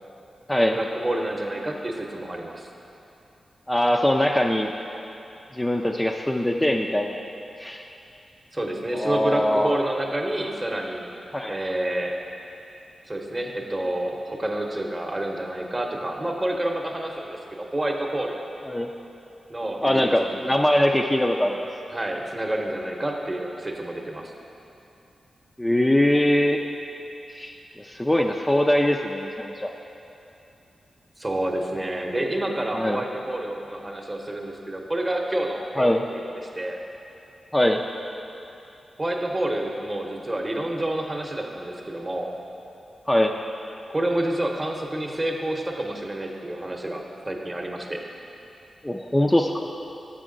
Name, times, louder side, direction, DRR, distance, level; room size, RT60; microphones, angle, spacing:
voice 1, 0.7-2.7 8.5-11.1 11.5-12.1 13.1-18.4 19.5-20.5 21.9-24.3 31.2-36.2 36.5-36.8 39.0-42.3 43.9-48.0, right 1 dB, 25° right, 2 dB, 0.8 m, -28 dB
voice 2, 3.7-4.7 5.5-7.2 7.6-7.9 8.9-9.8 11.3-11.6 18.7-18.9 19.8-21.6 25.6-26.6 27.3-29.7 32.7-33.0 35.8-36.2 37.5-37.8 43.1-43.3 48.8-49.7, left 1 dB, 15° left, 2 dB, 0.3 m, -22 dB
6.7 x 6.1 x 3.8 m, 2.9 s
cardioid pair, 60°, 0 cm